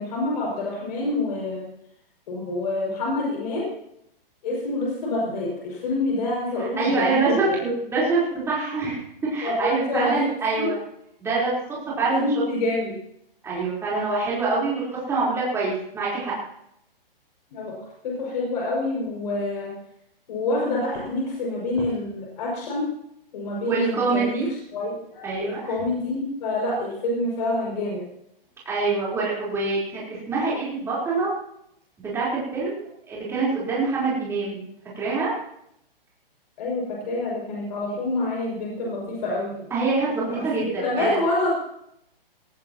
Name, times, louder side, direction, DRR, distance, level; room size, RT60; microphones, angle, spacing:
voice 1, 0.0-1.7 2.3-3.7 4.4-7.6 9.4-10.3 10.5-10.7 12.1-13.0 17.5-17.7 18.0-19.7 20.3-22.9 23.3-24.4 24.7-28.0 36.6-39.5 40.3-41.5, left 2 dB, 45° left, -3 dB, 6.2 m, -27 dB
voice 2, 6.6-9.0 9.3-10.8 11.2-11.6 12.0-12.3 13.4-16.3 23.7-24.5 25.2-25.6 28.7-31.3 32.1-34.7 35.0-35.3 39.7-41.2, right 3 dB, 10° right, -7 dB, 4.2 m, -25 dB
19.0 x 17.5 x 3.0 m, 0.76 s
hypercardioid pair, 160°, 29 cm